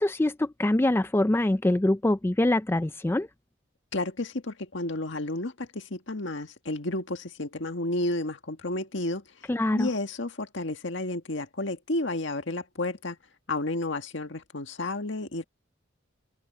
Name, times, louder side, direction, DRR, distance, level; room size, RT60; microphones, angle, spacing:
voice 1, 0.0-3.3 9.5-9.9, left 1 dB, 10° left, 0.4 m, -24 dB
voice 2, 3.9-13.2 13.5-15.4, left 2 dB, 70° left, 1.8 m, -32 dB
head